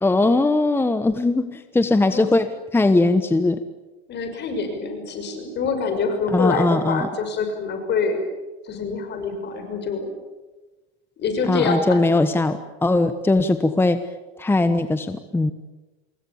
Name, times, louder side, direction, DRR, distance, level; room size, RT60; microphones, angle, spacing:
voice 1, 0.0-3.6 6.3-7.1 11.5-14.0 14.4-15.5, left 2 dB, 5° left, 10 dB, 1.2 m, -20 dB
voice 2, 4.1-8.2 8.6-10.1 11.2-12.0, left 4 dB, 35° left, 7 dB, 6.1 m, -25 dB
27.5 x 22.0 x 8.7 m, 1.1 s
supercardioid pair, 130°, 31 cm